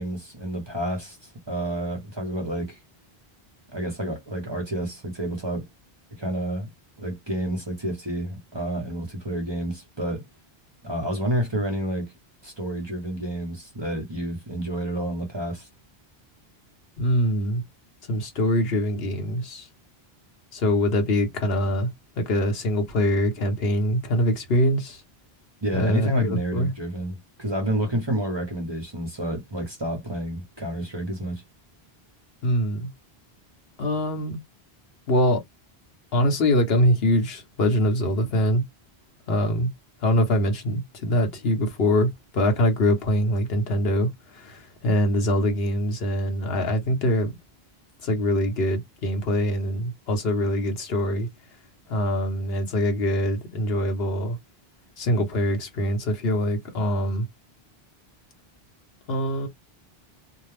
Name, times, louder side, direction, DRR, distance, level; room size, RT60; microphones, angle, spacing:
voice 1, 0.0-2.8 3.7-5.7 6.2-6.7 7.0-10.2 10.8-12.1 12.4-15.7 25.6-31.4, right 1 dB, 25° right, 1.0 m, -29 dB
voice 2, 17.0-17.6 18.1-19.7 20.5-21.9 22.2-25.0 25.7-26.7 32.4-32.9 33.8-34.4 35.1-35.4 36.1-38.6 39.3-39.7 40.0-47.3 48.0-51.3 51.9-54.4 55.0-57.3 59.1-59.5, left 1 dB, 70° left, 1.2 m, -23 dB
2.7 x 2.2 x 3.2 m
omnidirectional pair, 1.1 m